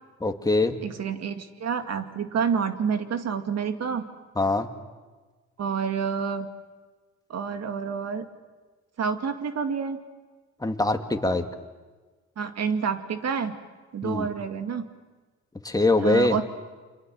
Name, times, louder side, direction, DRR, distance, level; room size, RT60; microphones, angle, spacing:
voice 1, 0.2-0.8 4.4-4.7 10.6-11.5 14.0-14.3 15.6-16.4, left 2 dB, 10° left, 5 dB, 2.3 m, -23 dB
voice 2, 0.8-4.0 5.6-6.5 7.3-8.3 9.0-10.0 12.4-13.5 13.9-14.9 16.0-16.4, right 6 dB, 60° right, 8 dB, 2.4 m, -28 dB
29.0 x 25.0 x 7.8 m, 1.3 s
cardioid pair, 90°, 30 cm